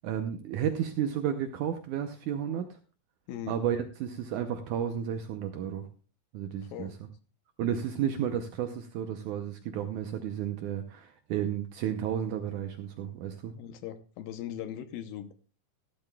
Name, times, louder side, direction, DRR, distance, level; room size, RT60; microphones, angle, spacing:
voice 1, 0.0-2.8 3.5-5.9 6.3-6.9 7.6-13.5, right 9 dB, 75° right, 7 dB, 1.8 m, -32 dB
voice 2, 3.3-3.6 6.7-6.9 13.5-15.3, left 10 dB, 80° left, 11 dB, 2.4 m, -39 dB
15.0 x 12.0 x 2.3 m, 0.36 s
omnidirectional pair, 4.3 m